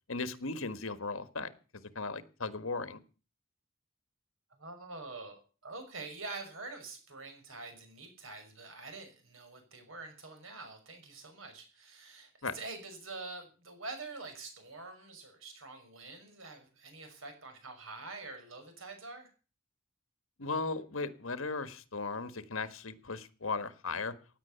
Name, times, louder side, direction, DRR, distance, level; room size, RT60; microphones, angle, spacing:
voice 1, 0.1-1.5 1.9-3.0 12.4-12.5 20.4-24.1, left 3 dB, 75° left, 12 dB, 1.6 m, -36 dB
voice 2, 4.5-19.3, right 3 dB, 75° right, 6 dB, 6.1 m, -46 dB
17.0 x 9.8 x 7.0 m, 0.36 s
head